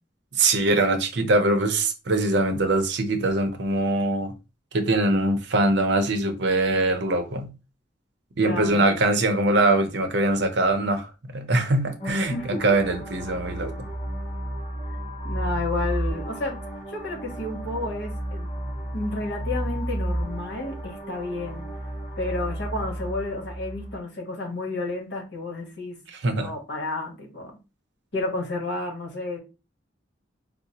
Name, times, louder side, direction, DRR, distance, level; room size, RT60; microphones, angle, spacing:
voice 1, 0.3-4.3 4.7-7.5 8.4-13.7 26.1-26.5, right 2 dB, 65° right, 0.6 m, -22 dB
voice 2, 8.4-8.9 12.3-12.6 15.2-16.6 16.9-18.5 18.9-21.6 22.2-26.0 26.3-27.5 28.1-29.4, left 2 dB, 60° left, 1.1 m, -31 dB
sound 1, 12.0-24.0, equal, 35° left, 1.6 m, -32 dB
4.7 x 2.0 x 2.8 m
head